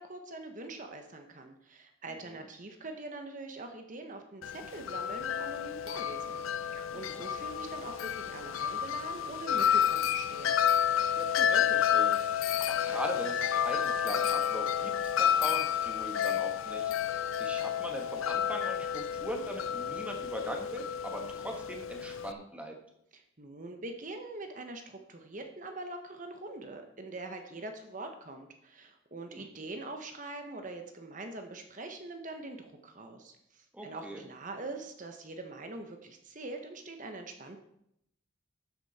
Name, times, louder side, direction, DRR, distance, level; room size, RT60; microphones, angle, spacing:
voice 1, 0.0-10.6 23.1-37.6, right 2 dB, 40° right, 5 dB, 1.1 m, -43 dB
Wind chime, 4.4-22.3, left 9 dB, 85° left, 0.5 m, -30 dB
voice 2, 6.9-7.2 11.2-16.9 17.4-22.7 29.3-29.5 33.7-34.2, right 1 dB, 5° right, 2 dB, 1.6 m, -40 dB
12.5 x 8.4 x 4.2 m, 0.76 s
head